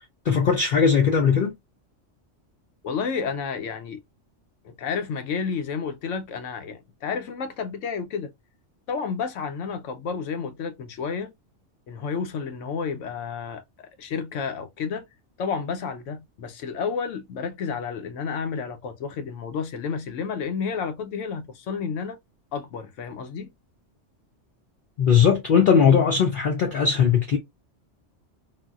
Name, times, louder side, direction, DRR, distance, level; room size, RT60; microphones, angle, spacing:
voice 1, 0.3-1.6 25.0-27.4, left 6 dB, 55° left, 0.6 m, -19 dB
voice 2, 2.8-4.0 4.6-8.3 8.9-11.3 11.9-15.1 15.4-22.2 22.5-23.5, left 6 dB, 85° left, 1.0 m, -31 dB
4.0 x 2.1 x 2.3 m
omnidirectional pair, 1.2 m